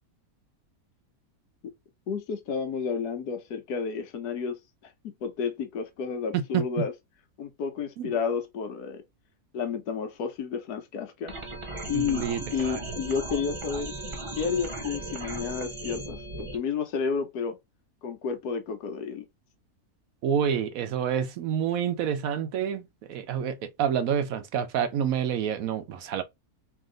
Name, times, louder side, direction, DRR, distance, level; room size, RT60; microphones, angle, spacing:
voice 1, 2.1-6.9 7.4-9.0 9.5-11.3 11.9-12.2 12.5-13.9 14.3-17.6 18.0-19.2, left 6 dB, 80° left, 1.3 m, -31 dB
voice 2, 6.3-6.8 8.0-8.1 11.9-12.4 12.6-12.8 20.2-26.2, right 8 dB, 70° right, 1.0 m, -28 dB
sound 1, 11.3-16.6, right 2 dB, 30° right, 0.5 m, -37 dB
3.4 x 2.8 x 3.8 m
omnidirectional pair, 1.6 m